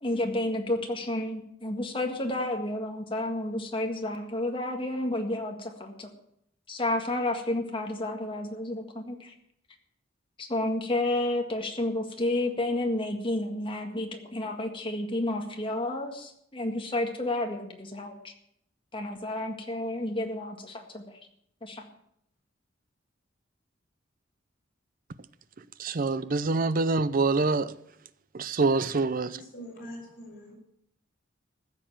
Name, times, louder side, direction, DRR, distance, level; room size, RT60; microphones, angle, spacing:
voice 1, 0.0-6.1 6.7-9.3 10.4-18.3 18.9-21.0 21.6-21.9, left 1 dB, 25° left, 1.8 m, -31 dB
voice 2, 25.8-27.7 28.3-29.4, right 3 dB, 45° right, 0.6 m, -25 dB
voice 3, 29.2-30.5, equal, 50° left, 6.1 m, -44 dB
15.0 x 7.1 x 7.3 m
head